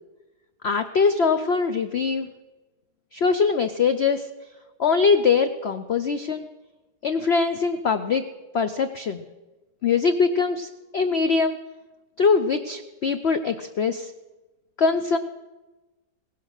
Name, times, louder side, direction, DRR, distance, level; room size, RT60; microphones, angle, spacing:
voice 1, 0.6-2.3 3.1-4.3 4.8-6.5 7.0-8.2 8.5-9.2 9.8-11.6 12.2-14.1 14.8-15.2, left 5 dB, 60° left, 9 dB, 0.7 m, -22 dB
17.0 x 11.5 x 6.5 m, 1.1 s
omnidirectional pair, 1.8 m